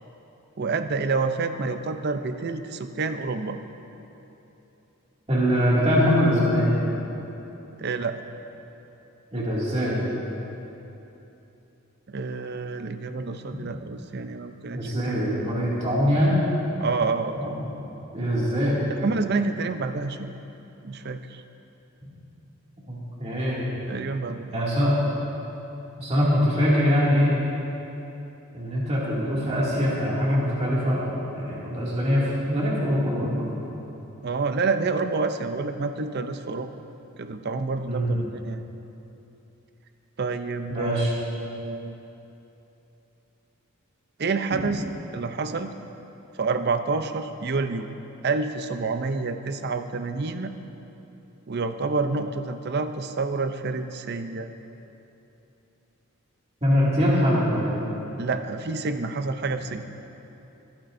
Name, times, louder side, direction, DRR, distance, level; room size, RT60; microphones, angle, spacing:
voice 1, 0.6-3.6 7.8-8.2 12.1-15.2 16.8-17.5 18.9-20.3 20.8-21.4 23.9-24.8 34.2-36.7 37.2-38.6 40.2-42.0 44.2-44.8 45.1-45.7 46.3-47.9 48.2-50.5 51.5-54.5 58.2-59.8, right 4 dB, 50° right, 8 dB, 0.5 m, -28 dB
voice 2, 5.3-6.8 9.3-10.0 14.7-16.4 17.4-17.6 18.1-18.8 22.9-23.7 24.5-25.0 26.0-27.3 28.5-33.5 37.9-38.2 40.7-41.1 56.6-57.8, equal, 30° right, -7 dB, 2.4 m, -23 dB
26.5 x 8.9 x 2.6 m, 3.0 s
head